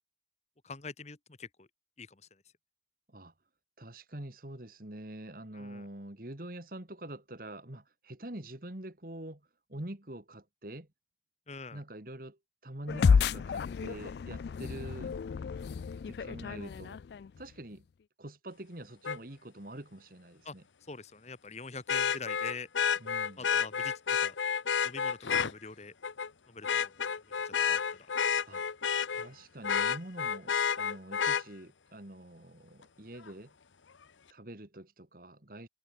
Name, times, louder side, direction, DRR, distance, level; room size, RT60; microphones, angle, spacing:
voice 1, 0.6-1.7 2.0-2.2 5.5-5.8 11.5-11.8 20.4-20.6 20.9-22.7 23.4-24.4 24.8-25.9 26.5-27.2 27.4-28.1 29.1-29.4, left 4 dB, 35° left, 1.3 m, -44 dB
voice 2, 3.8-10.9 11.7-15.1 16.1-17.0 17.4-17.9 18.2-20.6 23.0-23.5 28.5-28.7 29.1-33.5 34.3-35.7, right 1 dB, 50° right, 2.1 m, -45 dB
sound 1, 12.9-17.5, left 5 dB, 60° left, 0.3 m, -30 dB
Vehicle horn car horn honking, 19.0-19.2 21.9-25.5 26.0-26.3 26.6-29.3 29.6-31.4 33.3-33.4, left 7 dB, 90° left, 0.8 m, -30 dB
head